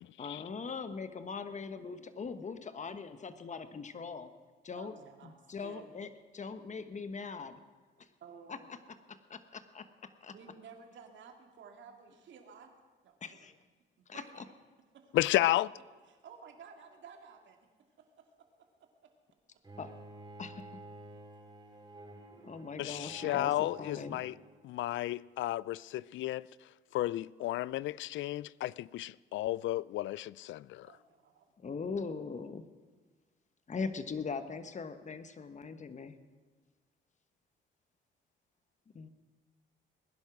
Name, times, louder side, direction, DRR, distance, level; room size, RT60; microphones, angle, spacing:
voice 1, 0.2-4.3 4.6-4.9 5.2-6.1 6.3-7.6 8.0-8.1 8.5-8.6 9.1-10.3 13.2-13.5 14.1-14.2 19.8-19.9 20.4-20.8 22.4-24.2 31.6-32.6 33.7-36.2 38.9-39.1, left 5 dB, 35° left, 1.3 m, -41 dB
voice 2, 4.7-6.0 8.2-8.7 10.3-12.7 13.0-13.5 14.0-14.5 14.9-15.2 16.0-17.7 18.0-19.1 30.8-31.5, right 6 dB, 70° right, 2.3 m, -54 dB
voice 3, 15.1-15.7 22.8-24.3 24.6-26.5 26.9-30.9, left 15 dB, 75° left, 0.4 m, -32 dB
Bowed string instrument, 19.6-24.7, right 2 dB, 20° right, 3.8 m, -51 dB
20.0 x 11.0 x 6.1 m
cardioid pair, 90°, 20 cm